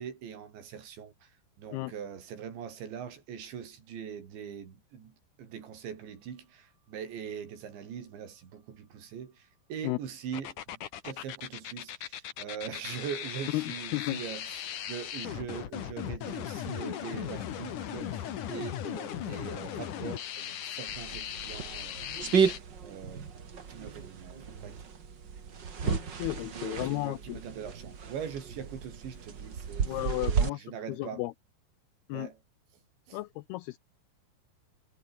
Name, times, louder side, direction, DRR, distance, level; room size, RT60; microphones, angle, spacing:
voice 1, 0.0-23.3 23.7-24.8 26.4-31.2 32.1-32.4 33.1-33.2, right 8 dB, 80° right, 6.0 m, -42 dB
sound 1, 10.3-22.6, left 10 dB, 55° left, 2.8 m, -38 dB
voice 2, 13.5-14.2 25.8-27.4 29.9-31.3 32.1-32.3 33.1-33.8, left 19 dB, 85° left, 2.3 m, -34 dB
sound 2, 20.9-30.5, right 6 dB, 45° right, 1.5 m, -33 dB
omnidirectional pair, 5.1 m